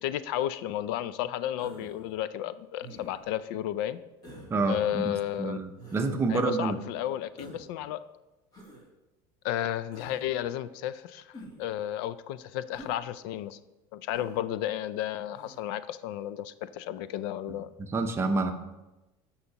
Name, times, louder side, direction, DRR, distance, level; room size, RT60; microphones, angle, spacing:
voice 1, 0.0-4.0 4.7-5.6 6.3-8.0 9.4-13.6 13.9-17.7, left 12 dB, 80° left, 15 dB, 0.4 m, -33 dB
Human voice, 1.6-2.1 2.8-3.3 4.2-4.5 5.8-6.1 7.4-7.7 8.5-8.8 9.9-10.3 11.3-11.7 12.7-13.0 14.1-14.4 15.3-15.7, right 1 dB, 35° left, 2.6 m, -47 dB
voice 2, 4.5-6.8 17.8-18.5, right 3 dB, 20° right, 6 dB, 0.7 m, -28 dB
14.5 x 5.6 x 2.9 m, 1.0 s
cardioid pair, 140°, 12 cm